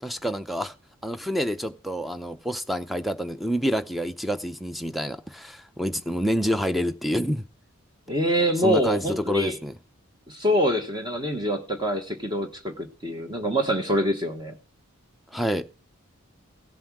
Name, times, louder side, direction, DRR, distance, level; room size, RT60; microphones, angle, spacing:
voice 1, 0.0-0.7 1.0-7.4 8.6-9.7 15.3-15.7, equal, ahead, 0.6 m, -27 dB
voice 2, 8.1-9.6 10.3-14.5, equal, 20° right, 1.3 m, -25 dB
16.5 x 7.7 x 4.7 m
head